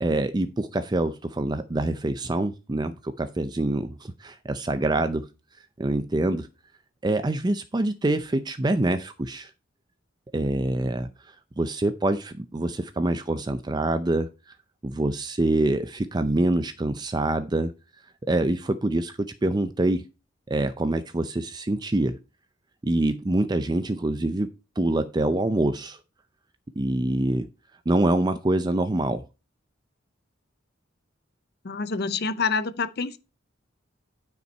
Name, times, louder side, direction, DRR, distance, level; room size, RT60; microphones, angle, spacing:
voice 1, 0.0-5.3 5.8-6.5 7.0-9.5 10.3-11.1 11.6-14.3 14.8-17.7 18.2-20.1 20.5-22.2 22.8-24.5 24.8-26.0 26.8-27.5 27.9-29.2, right 2 dB, 20° right, 0.5 m, -25 dB
voice 2, 31.6-33.2, left 4 dB, 55° left, 0.7 m, -27 dB
9.5 x 5.5 x 4.4 m
head